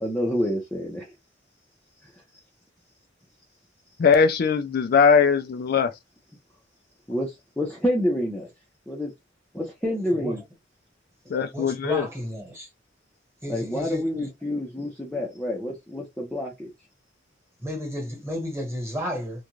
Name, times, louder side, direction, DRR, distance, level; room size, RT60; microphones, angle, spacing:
voice 1, 0.0-1.1 2.0-2.2 7.1-8.5 8.9-9.1 9.5-10.4 13.5-16.7, left 1 dB, 5° left, 0.6 m, -28 dB
voice 2, 4.0-5.9 11.3-12.1, left 6 dB, 50° left, 0.3 m, -20 dB
voice 3, 11.5-12.7 13.4-14.3 17.6-19.3, equal, 15° right, 1.2 m, -32 dB
2.4 x 2.2 x 3.0 m
head